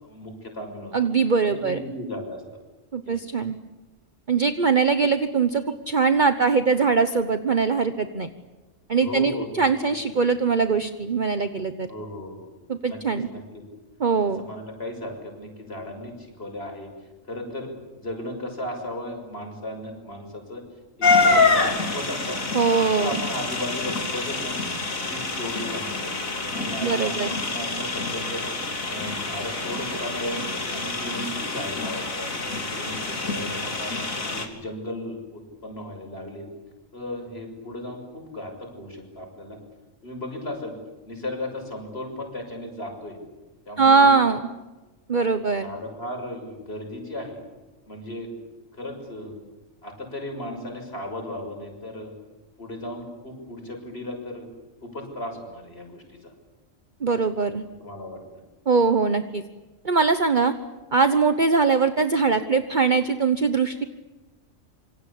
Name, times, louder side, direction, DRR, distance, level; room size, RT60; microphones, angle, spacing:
voice 1, 0.0-0.9 1.5-2.4 3.0-3.2 9.0-9.9 11.9-12.5 12.8-13.6 14.4-16.9 17.3-17.7 18.0-20.6 21.0-22.4 22.8-24.6 25.1-26.1 26.5-28.4 28.8-30.4 30.7-33.9 34.3-36.5 36.9-39.6 40.0-40.7 41.0-43.2 43.7-44.2 45.6-47.4 47.9-48.3 48.7-49.4 49.8-52.1 52.6-54.5 54.8-56.3 57.8-58.2, left 1 dB, 45° left, 3 dB, 6.7 m, -35 dB
voice 2, 0.9-1.8 2.9-3.6 4.3-8.3 8.9-11.9 12.7-13.3 14.0-14.4 22.5-23.2 26.8-27.4 43.8-44.4 45.1-45.7 57.0-57.6 58.7-59.4 59.8-60.5 60.9-63.8, right 4 dB, 35° right, 9 dB, 1.2 m, -21 dB
sound 1, 21.0-34.5, left 3 dB, 80° left, 3.5 m, -26 dB
27.0 x 25.5 x 8.6 m, 1.1 s
omnidirectional pair, 1.4 m